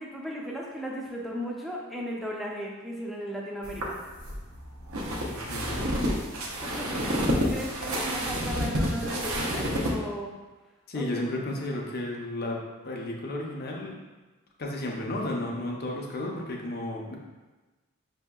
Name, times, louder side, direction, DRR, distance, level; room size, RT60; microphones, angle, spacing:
voice 1, 0.0-4.0 6.6-10.4 11.0-11.2, equal, ahead, -3 dB, 0.4 m, -36 dB
sound 1, 3.6-9.9, equal, 75° right, 0.7 m, -29 dB
voice 2, 5.2-5.8 10.9-14.0 14.6-17.2, left 1 dB, 45° left, -1 dB, 0.6 m, -33 dB
5.8 x 2.7 x 2.3 m, 1.2 s
head